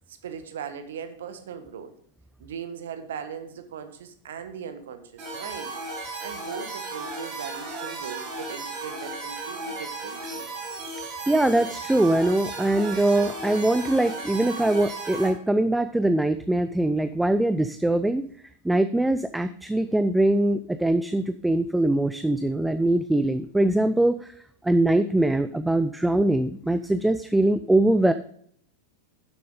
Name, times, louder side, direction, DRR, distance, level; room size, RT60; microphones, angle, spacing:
voice 1, 0.1-1.9 2.4-5.7 6.2-10.5, right 7 dB, 60° right, 9 dB, 1.2 m, -39 dB
sound 1, 5.2-15.3, right 3 dB, 40° right, 4.5 m, -35 dB
voice 2, 11.3-18.2 18.6-24.3 24.6-28.1, right 1 dB, 5° right, 12 dB, 0.4 m, -22 dB
11.0 x 7.6 x 3.7 m, 0.62 s
figure-of-eight pair, 90°, 0 cm